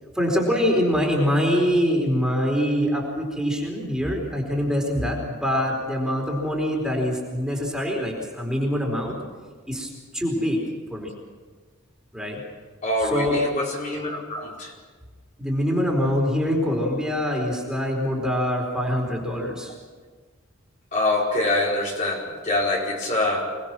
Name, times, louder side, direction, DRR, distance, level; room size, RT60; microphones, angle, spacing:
voice 1, 0.1-9.2 9.7-10.6 10.9-11.1 12.1-12.4 13.0-13.4 15.4-19.7, equal, 5° right, -1 dB, 4.3 m, -24 dB
voice 2, 12.8-14.7 20.9-23.5, left 2 dB, 40° left, -3 dB, 4.6 m, -25 dB
26.0 x 20.5 x 6.2 m, 1.4 s
head